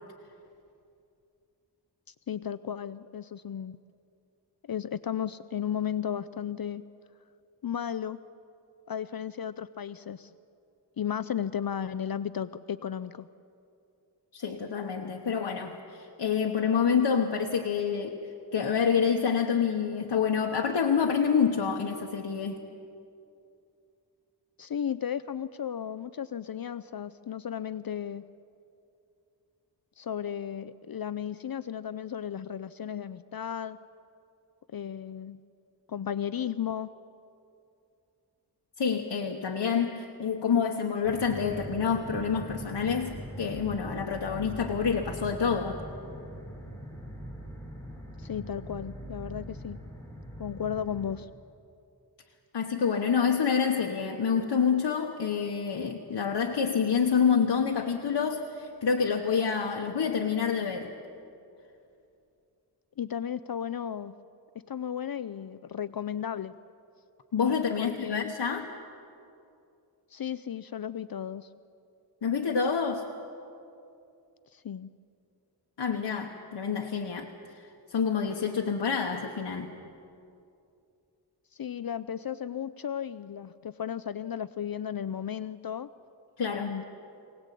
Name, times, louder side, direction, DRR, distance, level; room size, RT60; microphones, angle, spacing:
voice 1, 2.1-3.8 4.7-6.8 7.6-8.2 8.9-10.3 11.0-13.3 24.6-28.3 30.0-33.8 34.7-35.4 35.9-36.9 48.2-49.8 50.4-51.3 63.0-64.2 64.5-66.5 67.8-68.3 70.1-71.5 74.5-74.9 81.5-85.9 86.6-86.8, left 9 dB, 60° left, 14 dB, 0.5 m, -34 dB
voice 2, 14.3-18.2 18.5-22.6 38.8-45.8 52.5-60.9 67.3-68.7 72.2-73.1 75.8-79.7 86.4-86.7, left 6 dB, 85° left, 1 dB, 1.2 m, -27 dB
sound 1, 41.0-51.1, right 1 dB, 5° left, 3.7 m, -42 dB
23.5 x 18.5 x 8.3 m, 2.6 s
wide cardioid pair, 70°, 41 cm